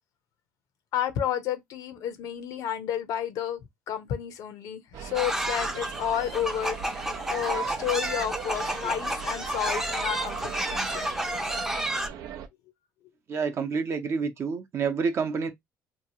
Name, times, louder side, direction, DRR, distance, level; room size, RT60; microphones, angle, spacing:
voice 1, 0.9-7.0 7.3-11.1, left 10 dB, 75° left, 0.7 m, -31 dB
sound 1, 4.9-12.5, right 8 dB, 80° right, 0.5 m, -39 dB
sound 2, 5.1-12.1, right 1 dB, 5° right, 0.5 m, -31 dB
voice 2, 13.3-15.5, right 5 dB, 45° right, 0.7 m, -28 dB
2.8 x 2.3 x 2.8 m
cardioid pair, 95°, 6 cm